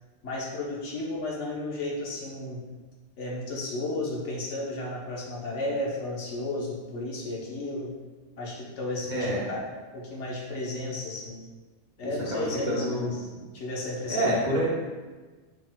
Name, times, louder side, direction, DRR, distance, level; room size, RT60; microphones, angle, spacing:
voice 1, 0.2-2.6 3.2-7.9 8.4-11.4 12.0-13.2 13.5-14.4, left 2 dB, 90° left, -4 dB, 1.3 m, -33 dB
voice 2, 9.1-9.5 12.0-13.4 14.1-14.7, equal, 45° right, -6 dB, 1.1 m, -28 dB
4.7 x 3.9 x 2.2 m, 1.3 s
omnidirectional pair, 1.2 m